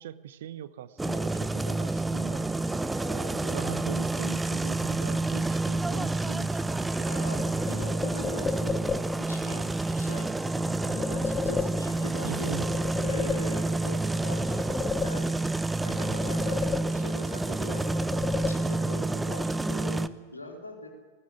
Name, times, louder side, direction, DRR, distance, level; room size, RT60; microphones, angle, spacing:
voice 1, 0.0-2.5 3.0-7.1 12.2-12.7, right 11 dB, 60° right, 15 dB, 1.0 m, -41 dB
sound 1, 1.0-20.1, right 2 dB, 5° right, 0.7 m, -29 dB
voice 2, 7.0-8.8 9.2-12.6 13.0-14.7 15.0-15.3 15.8-16.6 16.9-17.9 18.5-20.9, left 1 dB, 85° left, 1 dB, 4.1 m, -42 dB
sound 2, 7.4-9.4 10.8-12.2 12.5-13.9 14.2-15.6 16.0-17.3 17.7-19.0, left 6 dB, 20° left, 1.0 m, -34 dB
20.0 x 19.5 x 8.4 m, 1.4 s
figure-of-eight pair, 90°, 0 cm